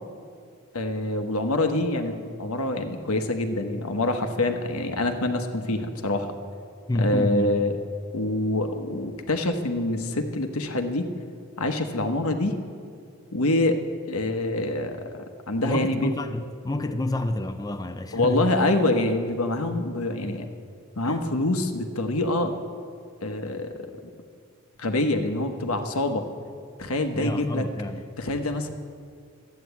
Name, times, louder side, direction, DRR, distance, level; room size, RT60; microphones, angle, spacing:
voice 1, 0.7-6.3 7.0-7.8 8.1-11.1 11.6-12.6 13.3-13.8 14.0-16.1 18.1-20.5 21.0-22.5 23.2-23.9 24.8-26.2 26.8-27.7 28.2-28.7, left 2 dB, 90° left, 1.1 m, -25 dB
voice 2, 6.9-7.6 15.6-18.5 21.0-21.3 27.1-28.1, left 1 dB, 15° left, 0.4 m, -28 dB
12.0 x 9.3 x 8.2 m
head